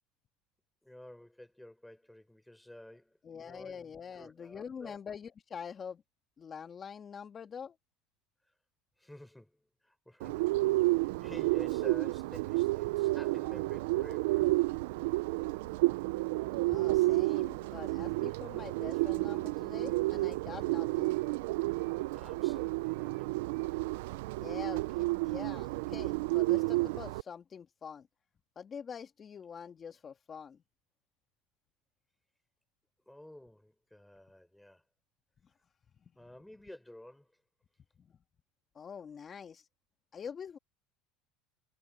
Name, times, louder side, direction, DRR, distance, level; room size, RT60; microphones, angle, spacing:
voice 1, 0.8-5.0 9.0-14.5 22.1-23.3 33.1-34.8 36.2-37.3, left 1 dB, 5° left, 4.3 m, -52 dB
voice 2, 3.2-6.0 6.4-7.8 16.5-21.2 24.4-28.1 28.6-30.6 36.0-36.1 38.1-38.2 38.8-39.7 40.1-40.6, left 7 dB, 35° left, 1.9 m, -45 dB
Bird, 10.2-27.2, right 20 dB, 80° right, 0.5 m, -31 dB
supercardioid pair, 95°, 0 cm